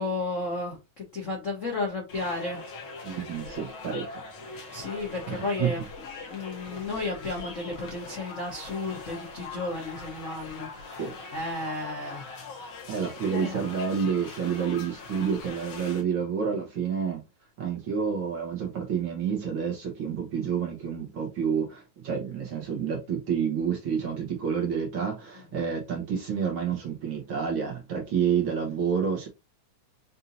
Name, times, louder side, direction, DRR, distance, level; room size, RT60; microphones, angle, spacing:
voice 1, 0.0-2.6 4.7-5.8 6.3-12.2 13.3-13.6 25.5-25.6, left 2 dB, 80° left, 0.6 m, -33 dB
sound 1, 2.1-16.0, left 3 dB, 60° left, 1.5 m, -42 dB
voice 2, 3.0-4.2 4.5-4.8 5.3-5.8 11.0-11.1 12.9-17.2 17.6-29.3, right 7 dB, 60° right, 1.5 m, -29 dB
5.3 x 2.7 x 2.8 m
omnidirectional pair, 3.4 m